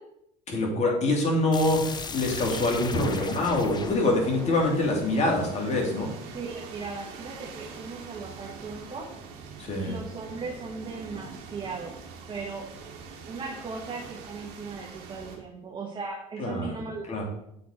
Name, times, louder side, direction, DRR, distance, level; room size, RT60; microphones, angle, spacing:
voice 1, 0.5-6.1 9.6-10.0 16.4-17.2, left 2 dB, 40° left, 0 dB, 2.3 m, -25 dB
sound 1, 1.5-6.2, left 4 dB, 25° left, 0.7 m, -38 dB
sound 2, 2.3-15.4, right 5 dB, 70° right, 1.5 m, -44 dB
voice 2, 6.3-9.1 9.8-11.9 12.3-12.6 13.3-17.2, right 4 dB, 30° right, -2 dB, 1.4 m, -37 dB
7.6 x 4.2 x 4.3 m, 0.79 s
supercardioid pair, 90°, 17 cm